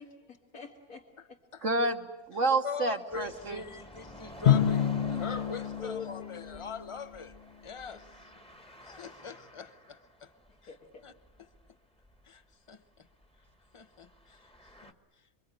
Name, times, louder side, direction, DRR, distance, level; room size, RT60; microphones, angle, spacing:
voice 1, 0.5-1.4 5.8-6.8 7.9-8.0 10.5-11.1, left 6 dB, 80° left, 2.3 m, -45 dB
voice 2, 1.6-3.6, right 2 dB, 60° right, 1.7 m, -29 dB
voice 3, 2.6-7.3 7.6-8.0 8.8-10.3 11.0-11.1 12.3-12.4 12.7-12.8 13.7-14.5 14.8-14.9, left 5 dB, 25° left, 1.0 m, -42 dB
sound 1, 3.1-10.2 10.5-10.6 11.2-11.7 12.0-12.2 14.1-14.9, equal, 5° left, 1.4 m, -49 dB
Drum, 4.5-7.1, left 9 dB, 50° left, 1.3 m, -28 dB
27.5 x 24.0 x 9.0 m
omnidirectional pair, 1.5 m